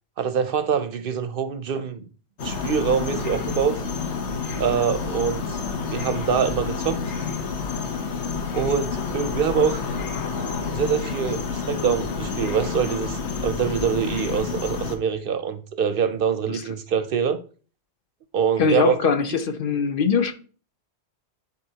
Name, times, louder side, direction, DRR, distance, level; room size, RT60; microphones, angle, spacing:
voice 1, 0.2-2.1 2.4-3.8 4.6-7.0 8.5-9.8 10.7-17.4 18.3-19.0, right 7 dB, 60° right, 0.7 m, -24 dB
sound 1, 2.4-15.0, left 5 dB, 80° left, 1.2 m, -29 dB
voice 2, 18.6-20.3, left 5 dB, 60° left, 0.8 m, -22 dB
10.5 x 4.0 x 2.8 m
omnidirectional pair, 1.1 m